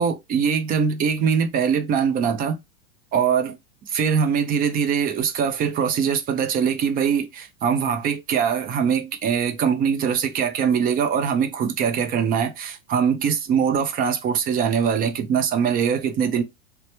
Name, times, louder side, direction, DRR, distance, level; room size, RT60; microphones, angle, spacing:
voice 1, 0.0-2.6 3.1-3.6 3.9-16.4, right 7 dB, 25° right, 0.5 m, -22 dB
3.0 x 2.2 x 2.9 m
hypercardioid pair, 105°, 40 cm